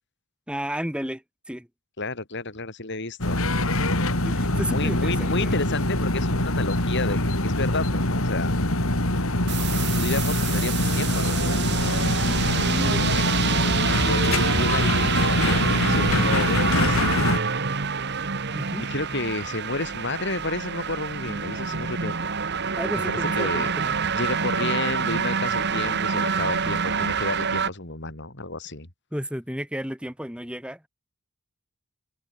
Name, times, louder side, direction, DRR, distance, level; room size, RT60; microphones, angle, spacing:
voice 1, 0.5-1.7 4.2-5.5 18.5-18.9 22.8-24.0 29.1-30.9, equal, 5° right, 6.4 m, -32 dB
voice 2, 2.0-3.4 4.4-8.5 9.8-12.2 12.5-17.0 18.9-22.3 23.1-23.7 24.1-28.9, left 2 dB, 55° left, 4.0 m, -32 dB
sound 1, 3.2-17.4, left 1 dB, 70° left, 4.4 m, -24 dB
sound 2, 9.5-27.7, right 6 dB, 50° right, 1.6 m, -27 dB
head